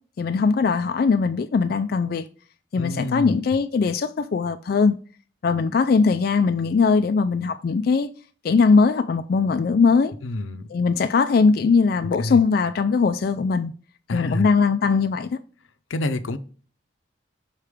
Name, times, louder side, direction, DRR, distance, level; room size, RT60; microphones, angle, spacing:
voice 1, 0.2-2.2 2.7-4.9 5.4-8.1 8.4-10.1 10.7-13.7 14.1-15.4, left 4 dB, 50° left, 0.3 m, -20 dB
voice 2, 2.8-3.4 10.2-10.7 12.2-12.4 14.1-14.5 15.9-16.4, left 1 dB, 90° left, 0.6 m, -27 dB
5.6 x 4.9 x 3.5 m
head